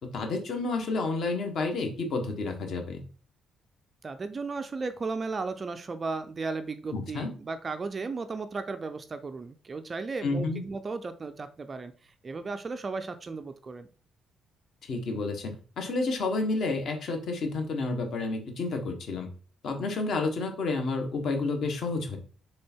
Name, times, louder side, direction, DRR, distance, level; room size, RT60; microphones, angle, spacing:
voice 1, 0.0-3.0 6.9-7.3 10.2-10.6 14.8-19.3 19.6-22.2, left 3 dB, 45° left, 4 dB, 1.4 m, -30 dB
voice 2, 4.0-13.9, right 4 dB, 25° right, 10 dB, 0.4 m, -35 dB
6.4 x 3.4 x 4.4 m, 0.38 s
cardioid pair, 175°, 0 cm